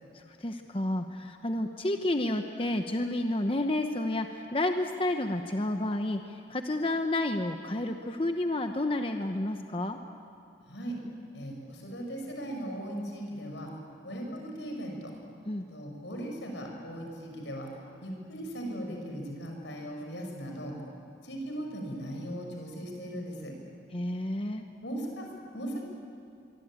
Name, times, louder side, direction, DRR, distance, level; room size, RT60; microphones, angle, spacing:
voice 1, 0.4-10.0 15.5-15.6 23.9-24.6, left 1 dB, 30° left, 5 dB, 0.9 m, -30 dB
voice 2, 10.7-11.0 11.3-13.7 14.0-15.1 15.7-17.7 18.0-20.8 21.2-23.5 24.8-25.3 25.5-25.8, equal, 85° left, 1 dB, 6.2 m, -38 dB
25.5 x 23.0 x 8.9 m, 2.4 s
head